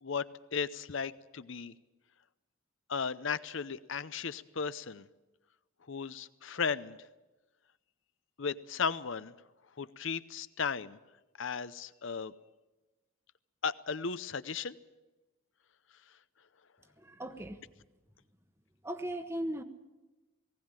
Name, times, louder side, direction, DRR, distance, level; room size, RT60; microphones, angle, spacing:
voice 1, 0.0-1.7 2.9-5.1 5.9-7.0 8.4-9.3 9.8-11.0 11.4-12.3 13.6-14.8, left 5 dB, 65° left, 15 dB, 0.7 m, -35 dB
voice 2, 17.0-17.6 18.8-19.6, right 1 dB, 10° right, 9 dB, 1.1 m, -37 dB
19.5 x 17.0 x 8.9 m, 1.1 s
head